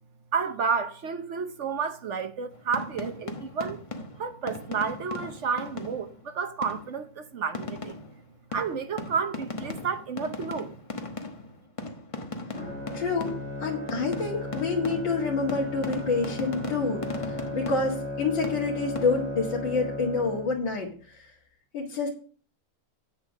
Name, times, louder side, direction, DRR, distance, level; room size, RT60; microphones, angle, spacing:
voice 1, 0.3-3.8 4.2-8.0 8.5-10.7, right 6 dB, 50° right, 0.9 m, -31 dB
sound 1, 2.5-6.2 6.6-7.0 7.5-13.6 13.9-18.2 18.4-19.4, left 2 dB, 25° left, 0.8 m, -38 dB
Bowed string instrument, 12.5-20.9, left 1 dB, 5° right, 6.2 m, -36 dB
voice 2, 12.9-21.3 21.7-22.1, left 4 dB, 75° left, 2.7 m, -28 dB
8.5 x 7.3 x 6.2 m
omnidirectional pair, 2.1 m